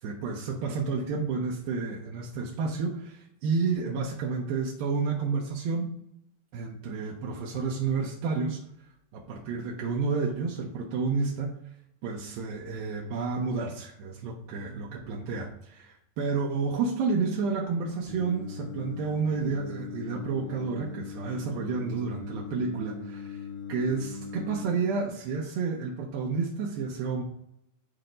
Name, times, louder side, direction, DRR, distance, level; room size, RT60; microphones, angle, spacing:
voice 1, 0.0-6.0 6.5-8.6 9.1-11.5 12.0-27.2, right 4 dB, 80° right, -2 dB, 2.1 m, -30 dB
Singing, 18.1-24.6, left 5 dB, 80° left, 4.6 m, -40 dB
13.0 x 4.4 x 2.6 m, 0.76 s
omnidirectional pair, 5.3 m